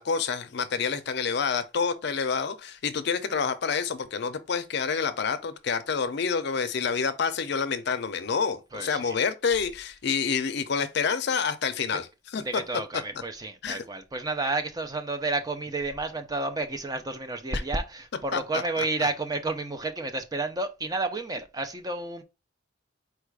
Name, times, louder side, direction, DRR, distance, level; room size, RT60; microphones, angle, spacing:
voice 1, 0.0-12.1 12.3-12.6 13.6-13.8 18.3-18.4, left 5 dB, 55° left, 0.5 m, -28 dB
voice 2, 8.7-9.2 12.4-22.2, right 2 dB, 20° right, 0.4 m, -31 dB
4.4 x 2.4 x 4.6 m
head